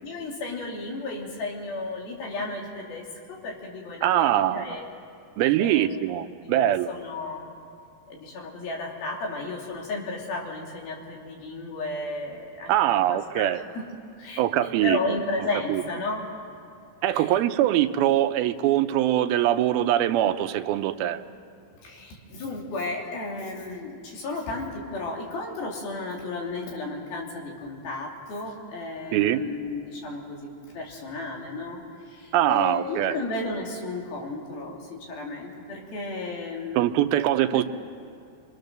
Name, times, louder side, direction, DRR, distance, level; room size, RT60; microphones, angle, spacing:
voice 1, 0.0-5.0 5.6-6.0 6.4-7.5 8.1-13.9 14.2-16.3 17.1-17.3 21.8-30.5 30.7-36.8 37.5-37.6, left 2 dB, 75° left, -1 dB, 4.8 m, -34 dB
voice 2, 4.0-4.8 5.4-6.9 12.7-13.6 14.4-15.0 15.7-15.8 17.0-21.2 29.1-29.4 32.3-33.2 36.8-37.6, right 12 dB, 85° right, 9 dB, 2.6 m, -23 dB
28.5 x 24.5 x 6.7 m, 2.4 s
omnidirectional pair, 4.3 m